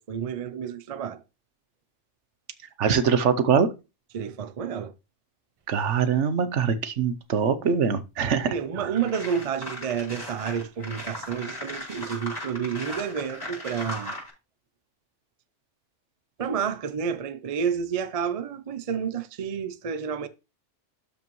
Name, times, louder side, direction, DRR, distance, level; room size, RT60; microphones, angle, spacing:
voice 1, 0.1-1.2 4.1-4.9 8.5-14.2 16.4-20.3, right 7 dB, 40° right, 0.5 m, -30 dB
voice 2, 2.8-3.7 5.7-8.5 8.8-8.9, right 6 dB, 75° right, 1.1 m, -23 dB
sound 1, 8.5-8.6 9.0-14.3, left 1 dB, 15° left, 5.0 m, -37 dB
12.5 x 5.2 x 3.1 m
omnidirectional pair, 1.2 m